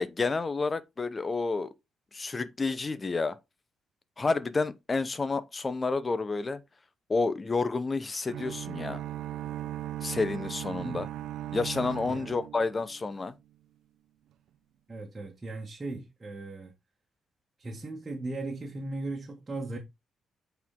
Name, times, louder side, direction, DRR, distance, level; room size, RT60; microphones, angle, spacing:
voice 1, 0.0-1.7 2.1-3.4 4.2-6.6 7.1-9.0 10.0-11.1 11.5-13.3, left 3 dB, 25° left, 0.7 m, -30 dB
sound 1, 8.3-13.3, right 13 dB, 90° right, 0.7 m, -38 dB
voice 2, 10.7-11.1 12.1-12.2 14.9-16.7 17.6-19.8, right 2 dB, 25° right, 1.6 m, -37 dB
8.0 x 4.7 x 3.7 m
cardioid pair, 120°, 0 cm